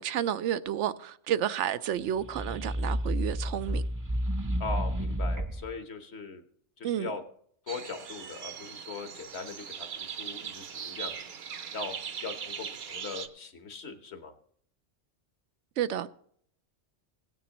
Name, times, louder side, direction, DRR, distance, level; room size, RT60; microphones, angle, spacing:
voice 1, 0.0-3.8 6.8-7.1 15.8-16.1, right 10 dB, 85° right, 0.9 m, -31 dB
sound 1, 2.1-5.7, equal, 20° right, 0.5 m, -31 dB
voice 2, 4.6-6.4 6.8-7.2 7.7-11.2 11.7-11.9 12.2-14.3, left 4 dB, 65° left, 1.4 m, -40 dB
sound 2, 7.7-13.3, right 7 dB, 60° right, 1.0 m, -40 dB
17.5 x 9.3 x 3.0 m
omnidirectional pair, 1.2 m